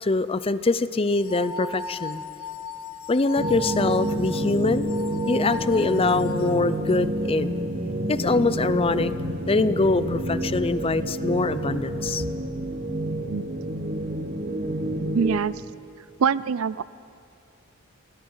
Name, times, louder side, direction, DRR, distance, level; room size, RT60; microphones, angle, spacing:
voice 1, 0.0-2.2 3.1-4.9 5.3-7.6 8.1-9.1 9.5-12.2, left 3 dB, 25° left, 14 dB, 0.5 m, -23 dB
sound 1, 1.1-7.0, left 4 dB, 70° left, 1.3 m, -37 dB
sound 2, 3.4-15.4, right 1 dB, 40° right, 1.3 m, -28 dB
voice 2, 15.1-15.5 16.2-16.8, right 6 dB, 70° right, 19 dB, 0.4 m, -23 dB
27.5 x 18.0 x 5.6 m, 2.5 s
head